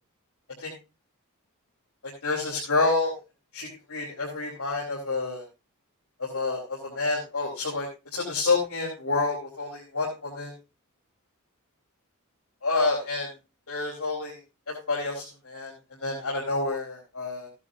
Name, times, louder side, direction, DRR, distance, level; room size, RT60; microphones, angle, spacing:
voice 1, 2.2-3.1 3.5-5.4 6.3-7.9 8.1-10.5 12.6-13.3 13.7-14.3 14.7-15.7 16.0-17.5, left 3 dB, 80° left, -4 dB, 4.6 m, -28 dB
16.5 x 11.0 x 2.6 m, 0.28 s
head